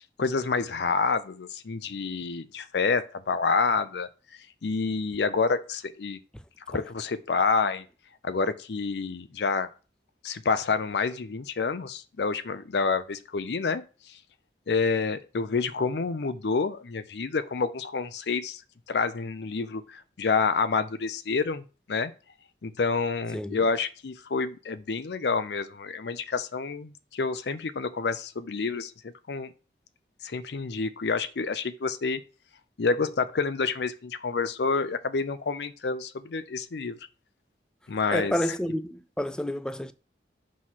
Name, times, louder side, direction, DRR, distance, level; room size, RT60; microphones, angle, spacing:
voice 1, 0.0-4.1 4.6-6.2 6.7-7.8 8.2-9.7 10.2-13.8 14.7-18.6 18.9-21.6 21.9-22.1 22.6-29.5 30.2-32.2 32.8-37.0 37.9-38.4, left 4 dB, 75° left, 0.5 m, -28 dB
voice 2, 38.1-39.9, equal, 5° left, 0.3 m, -29 dB
6.2 x 3.2 x 5.7 m
head